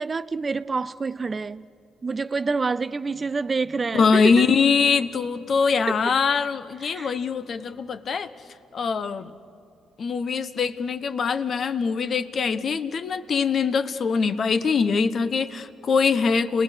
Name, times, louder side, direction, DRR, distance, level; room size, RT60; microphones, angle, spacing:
voice 1, 0.0-1.6 2.0-4.4 5.9-6.0 6.8-7.1, right 4 dB, 30° right, 0.4 m, -27 dB
voice 2, 3.9-8.3 8.7-9.3 10.0-16.6, left 5 dB, 50° left, 1.0 m, -23 dB
30.0 x 20.5 x 6.6 m
cardioid pair, 90°, 0 cm